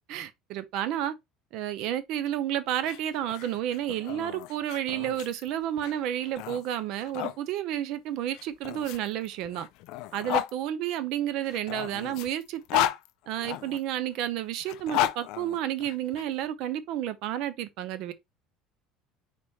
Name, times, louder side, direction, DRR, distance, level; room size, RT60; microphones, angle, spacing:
voice 1, 0.1-1.1 1.5-9.7 10.1-12.9 13.3-18.1, right 11 dB, 60° right, 0.6 m, -31 dB
sound 1, 2.7-7.4 8.3-10.5 11.4-13.8 14.6-16.2, left 14 dB, 65° left, 0.4 m, -33 dB
4.1 x 3.5 x 3.0 m
cardioid pair, 135°, 0 cm